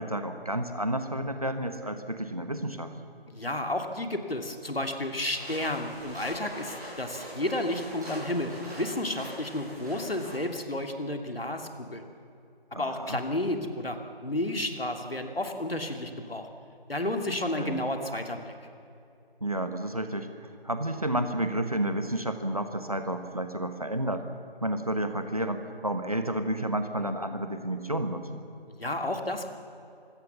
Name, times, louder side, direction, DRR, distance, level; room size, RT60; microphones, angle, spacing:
voice 1, 0.0-2.9 12.7-13.2 17.3-17.8 19.4-20.3 20.6-24.3 24.6-28.4, right 1 dB, 35° right, 8 dB, 1.3 m, -31 dB
voice 2, 3.3-12.0 12.7-16.5 16.9-18.5 28.8-29.5, left 1 dB, 65° left, 5 dB, 2.6 m, -32 dB
sound 1, 5.3-10.4, equal, 20° right, 7.2 m, -43 dB
25.0 x 16.5 x 7.2 m, 2.7 s
figure-of-eight pair, 175°, 31 cm